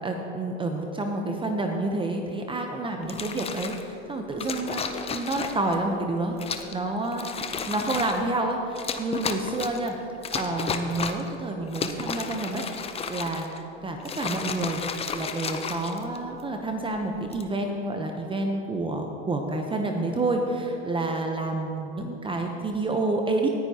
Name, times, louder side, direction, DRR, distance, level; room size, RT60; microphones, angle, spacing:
voice 1, 0.0-4.8 5.1-14.8 15.1-23.5, right 2 dB, 15° right, 3 dB, 0.8 m, -29 dB
sound 1, 3.0-3.8 4.4-5.7 6.4-6.8 7.1-8.2 8.7-9.9 10.2-11.3 11.7-13.6 14.0-16.4 17.1-17.5, left 5 dB, 20° left, 0.6 m, -33 dB
18.5 x 9.7 x 2.9 m, 3.0 s
hypercardioid pair, 105°, 33 cm